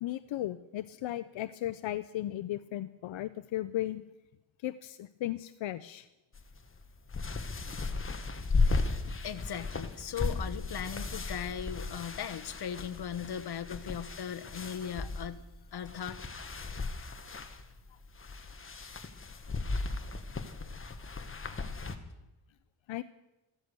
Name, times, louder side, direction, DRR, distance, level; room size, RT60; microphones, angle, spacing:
voice 1, 0.0-4.0 4.6-6.1 22.9-23.0, left 14 dB, 80° left, 13 dB, 0.7 m, -36 dB
sound 1, 6.3-22.0, left 3 dB, 30° left, 1.3 m, -36 dB
voice 2, 9.1-15.4 15.7-16.2, left 8 dB, 55° left, 9 dB, 1.2 m, -38 dB
15.0 x 13.5 x 6.8 m, 0.99 s
wide cardioid pair, 120°, 45 cm